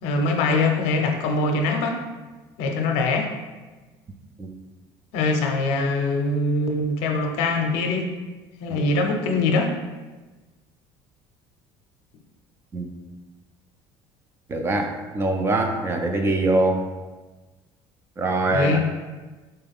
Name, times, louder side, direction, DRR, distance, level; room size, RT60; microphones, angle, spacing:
voice 1, 0.0-2.0 2.6-3.3 5.1-8.1 8.6-9.7 18.5-18.8, left 3 dB, 80° left, 3 dB, 0.6 m, -23 dB
voice 2, 14.5-16.9 18.2-18.8, right 2 dB, 20° right, 4 dB, 0.3 m, -23 dB
4.2 x 2.3 x 3.4 m, 1.2 s
cardioid pair, 150°, 11 cm